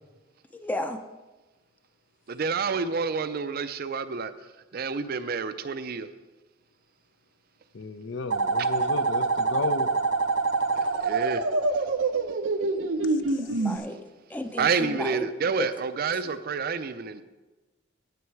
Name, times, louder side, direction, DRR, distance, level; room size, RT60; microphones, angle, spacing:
voice 1, 0.5-1.0 13.4-14.0 14.3-15.3 15.6-15.7, left 1 dB, 10° left, 7 dB, 0.5 m, -33 dB
voice 2, 2.3-4.3 4.7-6.1 11.0-11.4 14.6-17.2, right 5 dB, 50° right, 12 dB, 0.5 m, -28 dB
voice 3, 7.7-9.9, left 3 dB, 65° left, 12 dB, 0.6 m, -33 dB
sound 1, 8.3-13.8, right 3 dB, 85° right, 0.7 m, -25 dB
9.4 x 9.3 x 4.7 m, 1.2 s
head